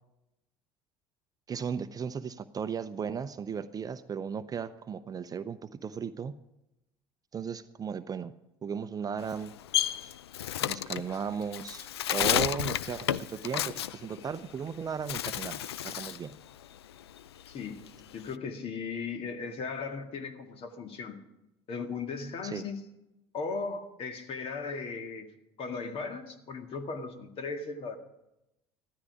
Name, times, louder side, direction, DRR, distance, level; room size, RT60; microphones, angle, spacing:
voice 1, 1.5-6.3 7.3-8.3 8.6-9.5 10.0-10.1 10.6-16.3 22.5-22.7, right 6 dB, 30° right, 12 dB, 0.7 m, -36 dB
Bird, 9.2-14.7 15.0-16.3 16.6-18.3, left 11 dB, 75° left, 0.4 m, -32 dB
voice 2, 17.5-21.2 21.7-22.8 23.3-25.3 25.6-28.0, left 4 dB, 45° left, 6 dB, 1.9 m, -37 dB
15.0 x 13.0 x 5.0 m, 0.90 s
figure-of-eight pair, 65°, 13 cm